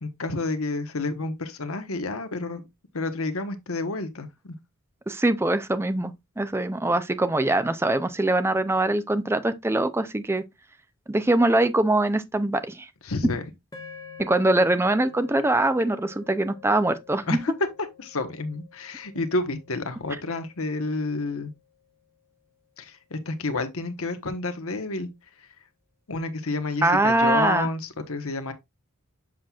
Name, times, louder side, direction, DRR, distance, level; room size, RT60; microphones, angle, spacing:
voice 1, 0.0-2.6 2.9-4.5 13.0-13.5 17.3-17.5 18.0-21.5 22.8-25.1 26.1-28.5, left 3 dB, 70° left, 1.1 m, -30 dB
voice 2, 5.1-10.4 11.1-12.9 14.2-17.4 26.8-27.7, right 2 dB, 10° right, 0.5 m, -23 dB
sound 1, 13.7-22.1, left 6 dB, 15° left, 1.4 m, -49 dB
7.5 x 5.9 x 2.4 m
head